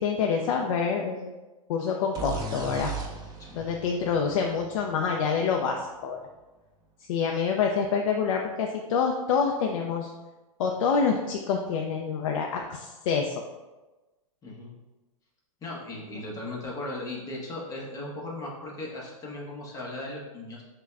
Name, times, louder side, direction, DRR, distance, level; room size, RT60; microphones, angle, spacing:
voice 1, 0.0-1.3 1.7-2.9 3.5-6.2 7.0-10.1 10.6-13.3, left 6 dB, 60° left, 1 dB, 0.4 m, -27 dB
sound 1, 2.1-5.8, right 3 dB, 20° right, 0.4 m, -37 dB
voice 2, 14.4-14.7 15.6-20.6, left 2 dB, 20° left, -3 dB, 0.8 m, -37 dB
5.0 x 2.2 x 2.4 m, 1.1 s
hypercardioid pair, 130°, 18 cm